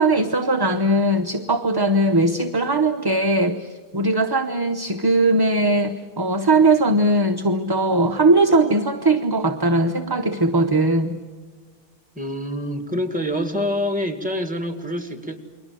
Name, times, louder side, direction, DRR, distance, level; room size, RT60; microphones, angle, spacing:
voice 1, 0.0-11.2, right 2 dB, 25° right, 6 dB, 0.7 m, -19 dB
voice 2, 12.2-15.4, left 1 dB, 5° right, 7 dB, 1.8 m, -26 dB
29.0 x 21.5 x 7.6 m, 1.3 s
omnidirectional pair, 1.1 m